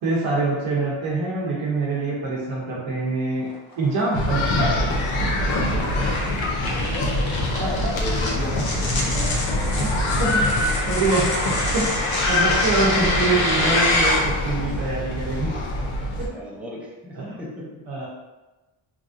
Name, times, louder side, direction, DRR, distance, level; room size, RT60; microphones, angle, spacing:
voice 1, 0.0-3.5 3.8-4.8 7.5-7.9 9.0-9.2 10.2-10.5 10.9-11.3 11.7-15.5 16.2-16.4 17.1-17.4 17.9-18.1, right 3 dB, 75° right, -5 dB, 0.8 m, -25 dB
sound 1, 3.5-14.2, left 1 dB, 50° left, 0.8 m, -27 dB
sound 2, 4.1-16.3, left 1 dB, 80° left, 0.7 m, -24 dB
voice 2, 5.2-6.3 6.8-7.2 8.0-9.2 16.3-17.7 18.0-18.1, equal, 5° right, -5 dB, 0.5 m, -36 dB
3.1 x 2.5 x 2.4 m, 1.1 s
cardioid pair, 120°, 48 cm